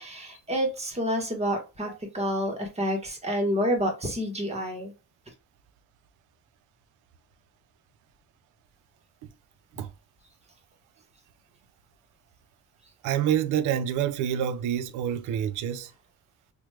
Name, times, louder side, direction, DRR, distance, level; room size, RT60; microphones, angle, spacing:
voice 1, 0.0-4.9, equal, 20° right, 1.1 m, -28 dB
voice 2, 13.0-15.9, right 10 dB, 85° right, 0.5 m, -27 dB
3.0 x 2.2 x 3.2 m
cardioid pair, 90°, 30 cm